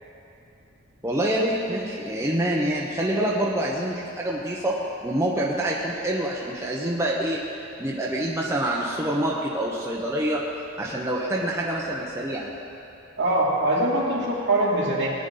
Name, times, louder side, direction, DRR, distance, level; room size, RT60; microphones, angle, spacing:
voice 1, 1.0-7.4 7.8-10.4 10.8-12.5, right 1 dB, 15° right, -4 dB, 1.0 m, -26 dB
voice 2, 13.2-15.1, right 1 dB, 60° right, -5 dB, 2.8 m, -22 dB
19.0 x 10.0 x 4.0 m, 2.9 s
head